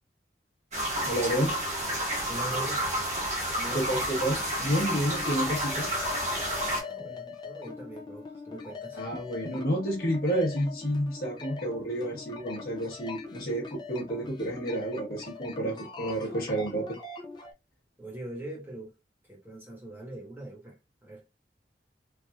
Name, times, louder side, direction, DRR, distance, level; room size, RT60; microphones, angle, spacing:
sound 1, 0.7-6.8, equal, 40° right, 1.2 m, -30 dB
voice 1, 1.1-1.5 3.7-5.9 7.0-7.1 9.0-17.0, right 1 dB, 55° left, 1.0 m, -30 dB
voice 2, 2.3-2.9 3.6-4.0 6.8-9.1 18.0-18.9 19.2-21.2, right 1 dB, 15° right, 1.1 m, -42 dB
sound 2, 4.7-17.5, left 5 dB, 25° left, 0.4 m, -42 dB
3.3 x 2.5 x 2.3 m
head